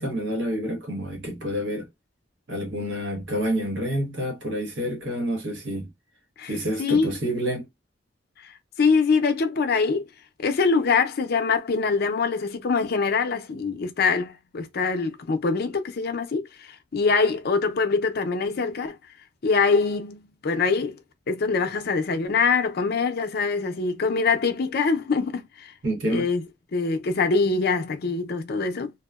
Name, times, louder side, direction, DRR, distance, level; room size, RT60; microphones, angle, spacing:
voice 1, 0.0-1.9 2.5-5.9 6.5-7.7 25.8-26.3, equal, 70° right, 0.9 m, -28 dB
voice 2, 6.4-7.1 8.4-10.1 10.4-19.0 19.4-21.0 21.3-25.7 26.1-26.4 26.7-28.9, left 4 dB, 55° left, 0.5 m, -24 dB
2.8 x 2.1 x 2.3 m
head